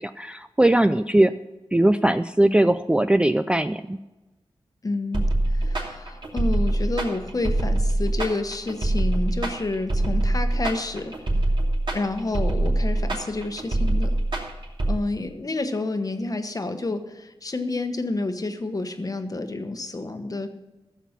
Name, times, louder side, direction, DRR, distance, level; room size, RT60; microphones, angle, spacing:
voice 1, 0.0-1.3 1.7-4.0, right 1 dB, 10° right, 10 dB, 0.3 m, -20 dB
voice 2, 4.8-11.1 11.9-14.2 14.9-20.5, left 2 dB, 35° left, 7 dB, 1.1 m, -29 dB
sound 1, 5.1-14.9, right 1 dB, 55° right, 2.8 m, -24 dB
14.5 x 7.3 x 5.8 m, 1.1 s
wide cardioid pair, 110°, 10 cm